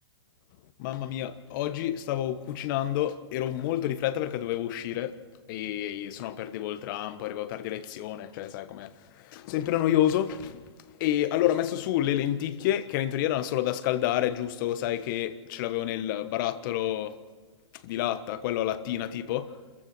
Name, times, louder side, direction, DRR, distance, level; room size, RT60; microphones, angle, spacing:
voice 1, 0.8-5.2 5.5-8.9 9.2-10.6 11.0-17.2 17.8-19.5, left 12 dB, 45° left, 1.3 m, -29 dB
27.5 x 15.0 x 6.2 m
hypercardioid pair, 130°, 15 cm